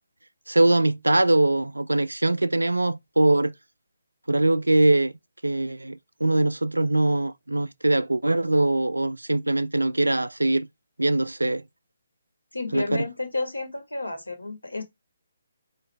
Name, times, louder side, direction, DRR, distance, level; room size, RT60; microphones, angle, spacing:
voice 1, 0.5-3.5 4.3-5.1 5.4-10.7 11.0-11.6 12.7-13.0, right 2 dB, 85° right, 0.3 m, -22 dB
voice 2, 12.5-14.8, left 2 dB, 85° left, 1.5 m, -31 dB
4.1 x 3.8 x 3.4 m
figure-of-eight pair, 145°, 0 cm